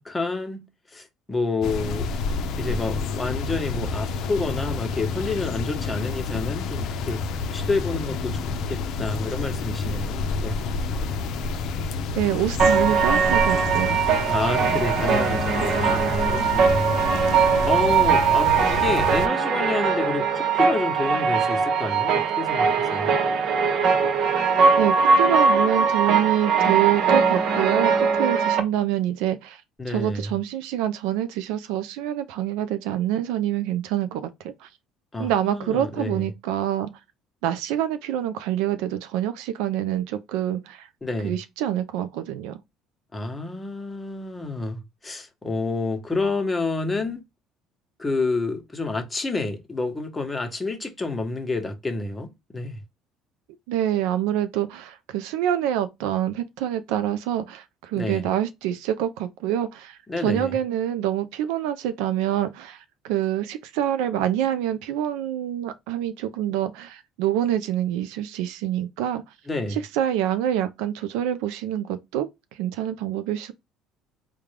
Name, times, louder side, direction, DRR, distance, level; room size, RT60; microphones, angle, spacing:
voice 1, 0.0-2.1 2.6-7.2 7.5-8.4 8.7-10.7 14.3-17.0 17.6-23.2 29.8-30.3 35.1-36.3 41.0-41.4 43.1-47.2 48.0-52.8 58.0-58.3 60.1-60.6 69.5-69.8, left 3 dB, 15° left, 0.9 m, -29 dB
sound 1, 1.6-19.3, left 4 dB, 65° left, 0.5 m, -29 dB
voice 2, 12.2-14.0 24.8-29.6 29.9-34.7 35.2-36.9 37.4-40.9 41.2-42.6 53.7-69.2 69.7-73.5, right 11 dB, 85° right, 0.4 m, -26 dB
sound 2, 12.6-28.6, right 5 dB, 60° right, 0.8 m, -21 dB
3.6 x 2.2 x 3.2 m
cardioid pair, 105°, 0 cm